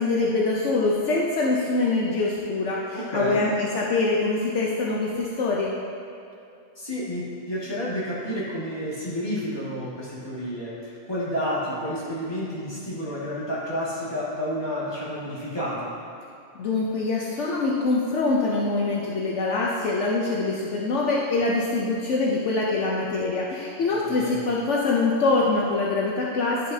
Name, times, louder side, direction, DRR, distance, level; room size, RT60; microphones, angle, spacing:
voice 1, 0.0-5.7 16.5-26.7, left 3 dB, 70° left, -3 dB, 1.0 m, -24 dB
voice 2, 2.9-3.4 6.8-15.9 23.9-24.4, equal, 20° left, -8 dB, 1.8 m, -30 dB
10.5 x 6.5 x 2.7 m, 2.7 s
omnidirectional pair, 1.3 m